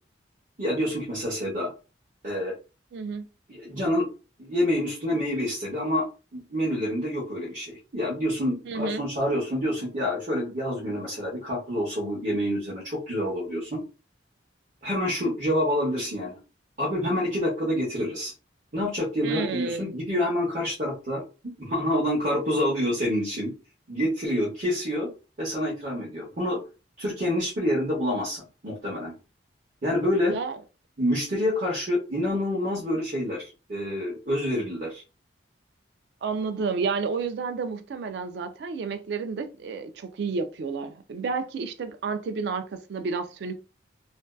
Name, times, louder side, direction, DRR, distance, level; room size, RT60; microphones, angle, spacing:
voice 1, 0.6-1.7 2.2-2.5 3.5-4.1 4.4-6.1 6.3-13.8 14.8-16.4 16.8-18.3 18.7-23.5 23.9-25.1 25.4-26.6 27.0-29.1 29.8-30.3 31.0-35.0, left 1 dB, 45° right, 0.8 m, -27 dB
voice 2, 2.9-3.3 8.7-9.0 19.2-20.0 30.3-30.6 36.2-43.6, right 5 dB, 60° right, 0.3 m, -31 dB
2.5 x 2.2 x 2.2 m
head